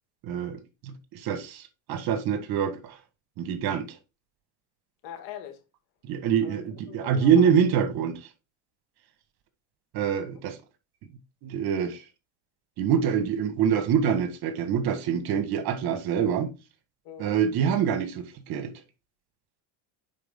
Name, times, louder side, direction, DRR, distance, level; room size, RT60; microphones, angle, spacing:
voice 1, 0.2-1.6 1.9-2.8 3.4-3.9 6.0-8.2 9.9-10.6 11.4-12.0 12.8-16.5 17.2-18.7, right 8 dB, 60° right, 1.7 m, -25 dB
voice 2, 5.0-5.6 6.4-6.6 6.9-7.5 17.0-17.4, left 10 dB, 90° left, 2.1 m, -42 dB
9.7 x 4.3 x 3.7 m
cardioid pair, 130°, 42 cm